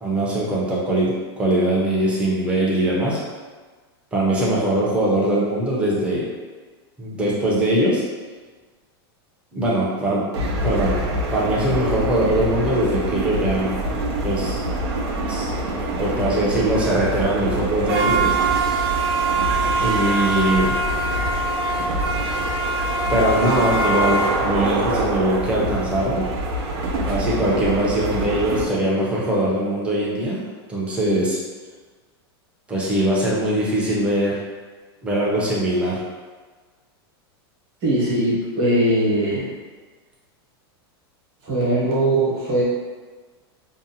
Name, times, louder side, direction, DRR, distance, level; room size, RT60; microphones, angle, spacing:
voice 1, 0.0-3.2 4.1-6.3 7.0-8.0 9.5-10.3 10.6-11.0 11.3-13.7 14.2-14.6 15.3-15.5 16.0-18.7 19.8-20.7 22.2-22.4 23.1-26.2 27.0-30.4 30.7-31.4 32.7-34.4 35.0-36.0, right 1 dB, 10° right, -6 dB, 0.5 m, -21 dB
sound 1, 10.3-28.6, right 2 dB, 85° right, 0.5 m, -24 dB
voice 2, 37.8-39.5 41.4-42.6, right 1 dB, 40° right, -6 dB, 1.0 m, -20 dB
2.6 x 2.0 x 2.7 m, 1.4 s
supercardioid pair, 155°, 13 cm